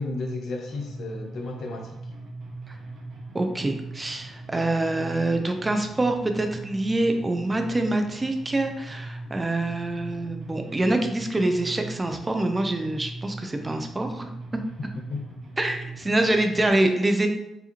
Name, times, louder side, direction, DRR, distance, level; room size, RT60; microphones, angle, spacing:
voice 1, 0.0-2.0 15.1-15.4, left 2 dB, 70° left, 2 dB, 0.7 m, -32 dB
sound 1, 0.7-16.7, right 2 dB, 75° right, 0.8 m, -40 dB
voice 2, 3.3-14.3 15.6-17.3, right 2 dB, 20° right, 5 dB, 0.5 m, -25 dB
4.8 x 2.6 x 2.9 m, 0.88 s
cardioid pair, 80°, 0 cm